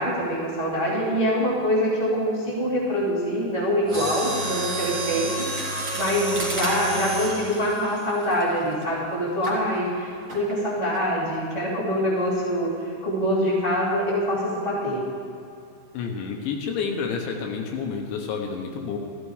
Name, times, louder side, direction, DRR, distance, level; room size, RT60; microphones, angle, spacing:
voice 1, 0.0-12.7 13.0-15.0, equal, 10° right, -7 dB, 1.5 m, -25 dB
Mechanisms, 3.8-8.8 9.4-9.6 10.3-10.6 10.9-11.0, right 2 dB, 30° right, 3.2 m, -30 dB
voice 2, 15.9-19.0, left 5 dB, 75° left, 2 dB, 3.2 m, -29 dB
14.0 x 14.0 x 4.9 m, 2.5 s
omnidirectional pair, 5.7 m